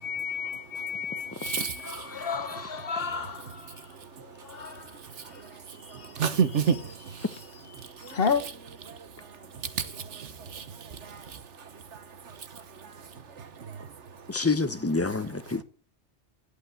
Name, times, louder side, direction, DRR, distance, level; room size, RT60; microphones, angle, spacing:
voice 1, 0.0-3.9 4.2-6.2 7.2-7.9 8.1-8.4, left 6 dB, 55° left, 1.6 m, -33 dB
voice 2, 1.3-2.2 3.7-4.3 4.9-7.4 7.8-8.0 8.9-13.1 13.4-13.9 14.4-14.5 15.1-15.5, right 7 dB, 75° right, 1.4 m, -34 dB
voice 3, 1.8-2.2 14.3-15.6, left 3 dB, 15° left, 0.7 m, -28 dB
11.0 x 8.4 x 9.3 m
omnidirectional pair, 1.2 m